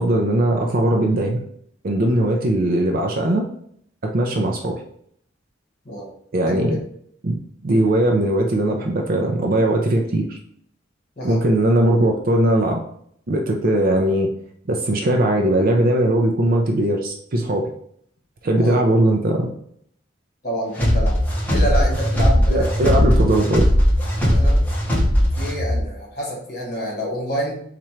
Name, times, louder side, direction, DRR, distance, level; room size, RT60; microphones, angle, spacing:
voice 1, 0.0-1.4 1.8-3.4 4.0-4.8 6.3-6.8 7.2-7.3 7.6-10.4 11.2-12.8 13.3-14.3 14.7-17.7 18.4-19.5 22.5-23.6, right 1 dB, 50° right, 2 dB, 0.5 m, -19 dB
voice 2, 6.4-6.8 11.2-11.4 18.5-18.8 20.4-21.1 21.5-22.7 24.3-24.6 25.4-27.6, equal, 40° left, -3 dB, 1.4 m, -27 dB
sound 1, 20.8-25.8, equal, 10° left, 1.0 m, -18 dB
4.2 x 2.5 x 4.4 m, 0.66 s
head